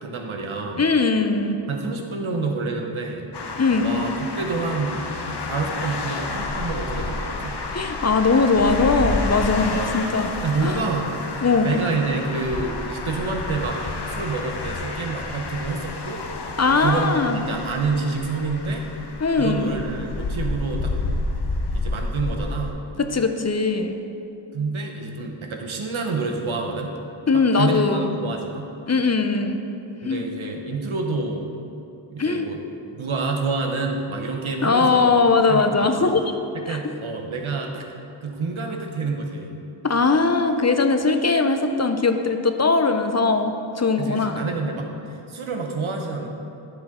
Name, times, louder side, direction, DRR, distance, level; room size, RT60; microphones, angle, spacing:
voice 1, 0.0-0.9 1.7-3.3 3.8-7.6 9.7-9.9 10.4-11.2 11.6-16.2 16.7-18.9 19.3-21.0 21.7-22.8 24.5-27.0 27.5-28.7 30.0-31.5 32.1-32.6 32.9-35.2 35.5-36.1 36.5-37.8 38.2-39.5 44.0-46.3, right 3 dB, 85° right, 2 dB, 1.0 m, -28 dB
voice 2, 0.8-1.6 3.6-3.9 7.7-10.3 10.6-10.8 11.4-11.7 16.6-17.4 19.2-19.7 23.0-24.0 27.3-28.1 28.9-29.6 30.0-30.2 32.2-32.5 34.6-36.2 36.7-36.8 39.8-44.4, left 4 dB, 35° left, 7 dB, 0.7 m, -20 dB
sound 1, 3.3-22.7, left 3 dB, 60° left, 0.8 m, -30 dB
11.5 x 6.7 x 3.7 m, 2.6 s
wide cardioid pair, 50°, 47 cm